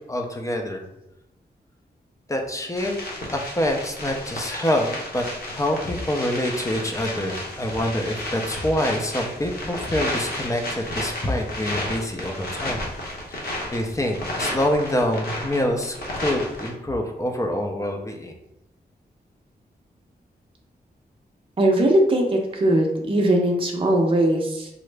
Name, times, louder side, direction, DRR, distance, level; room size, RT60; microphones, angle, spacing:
voice 1, 0.1-0.8 2.3-3.0 3.3-12.9 13.3-18.3, left 1 dB, 20° left, 3 dB, 0.5 m, -26 dB
sound 1, 2.8-16.7, left 1 dB, 70° left, 0.9 m, -32 dB
voice 2, 21.6-24.7, right 1 dB, 30° right, 0 dB, 0.6 m, -20 dB
3.6 x 2.0 x 3.3 m, 0.85 s
wide cardioid pair, 95°, 17 cm